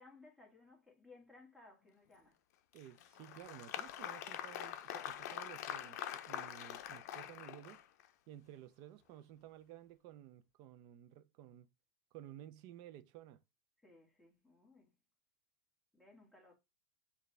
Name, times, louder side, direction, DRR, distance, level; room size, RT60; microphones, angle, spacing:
voice 1, 0.0-2.4 13.8-14.9 15.9-16.6, left 3 dB, ahead, 1.5 m, -61 dB
Applause, 2.7-8.1, left 11 dB, 75° left, 0.5 m, -45 dB
voice 2, 2.7-7.8 8.3-11.7 12.1-13.4, right 12 dB, 45° right, 0.5 m, -54 dB
6.6 x 2.4 x 3.2 m
supercardioid pair, 140°, 9 cm